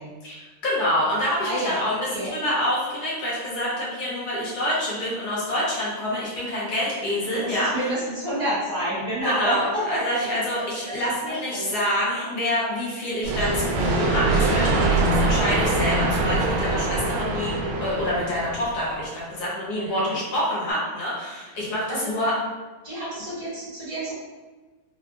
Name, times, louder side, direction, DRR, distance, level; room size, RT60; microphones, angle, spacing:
voice 1, 0.2-7.9 9.2-17.5 17.8-22.3, left 1 dB, 65° left, -6 dB, 1.0 m, -27 dB
voice 2, 1.4-2.3 7.3-10.3 10.9-11.7 19.8-20.2 21.9-22.1 22.8-24.1, right 1 dB, 35° right, -10 dB, 1.4 m, -29 dB
sound 1, 13.2-18.9, right 2 dB, 75° right, 1.3 m, -23 dB
3.7 x 2.2 x 2.3 m, 1.3 s
omnidirectional pair, 2.3 m